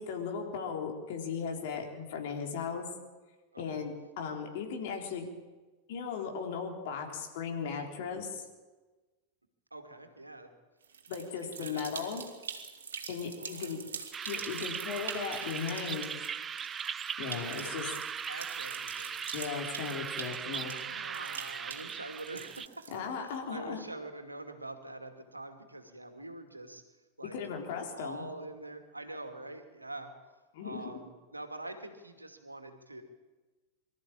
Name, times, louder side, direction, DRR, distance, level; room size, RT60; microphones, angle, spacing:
voice 1, 0.0-2.8 3.6-5.3 5.9-8.4 11.1-12.2 13.1-13.8 14.3-16.1 17.2-17.9 19.3-21.0 22.9-23.8 27.3-28.3 30.5-31.0, left 6 dB, 50° left, 2 dB, 3.8 m, -37 dB
voice 2, 9.7-10.5 11.4-12.1 13.4-13.8 17.5-19.2 20.4-22.9 23.2-26.8 27.2-30.1 30.6-33.0, right 2 dB, 85° right, 7 dB, 2.4 m, -45 dB
sound 1, 10.8-23.3, right 6 dB, 65° right, 2.6 m, -45 dB
sound 2, 14.1-22.7, right 7 dB, 20° right, 0.6 m, -39 dB
24.5 x 13.5 x 8.8 m, 1.3 s
figure-of-eight pair, 90°, 0 cm